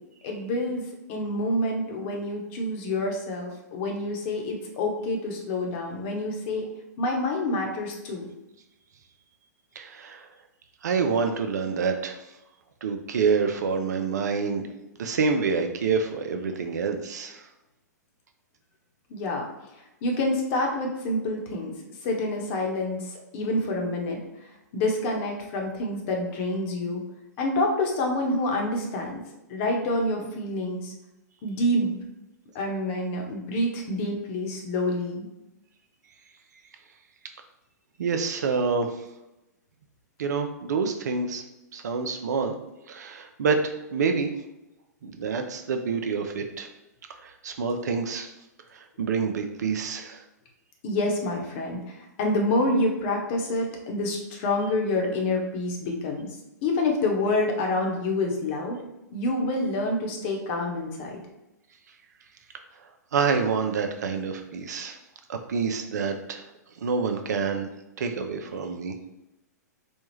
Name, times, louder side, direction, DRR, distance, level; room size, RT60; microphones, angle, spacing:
voice 1, 0.2-6.6 7.0-8.3 19.1-19.5 20.0-21.7 22.0-24.2 24.7-27.0 27.4-29.2 29.5-30.9 31.4-32.0 32.5-35.2 50.8-56.3 56.6-58.8 59.1-61.2, left 1 dB, 45° left, 1 dB, 1.0 m, -27 dB
voice 2, 9.8-10.3 10.8-12.2 12.8-14.6 15.0-17.4 38.0-38.9 40.2-41.4 41.7-42.5 42.9-44.3 45.0-46.7 47.2-48.3 49.0-50.2 63.1-65.0 65.3-66.4 66.8-67.7 68.0-68.9, right 5 dB, 70° right, 6 dB, 0.5 m, -27 dB
4.3 x 2.3 x 3.1 m, 0.93 s
hypercardioid pair, 120°, 10 cm